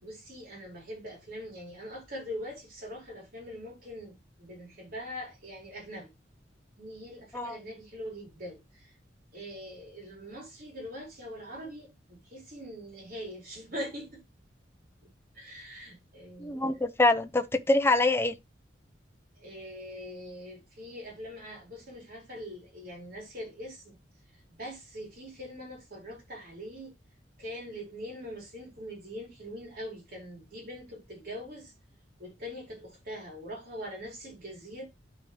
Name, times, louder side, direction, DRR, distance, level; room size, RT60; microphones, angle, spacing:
voice 1, 0.0-6.1 6.8-9.0 9.3-14.2 15.0-15.1 15.3-16.6 19.4-24.0 24.6-26.9 27.4-31.7 32.2-34.8, equal, 55° right, 4.9 m, -42 dB
voice 2, 16.4-18.3, left 2 dB, 15° left, 0.8 m, -25 dB
12.5 x 5.1 x 3.2 m
head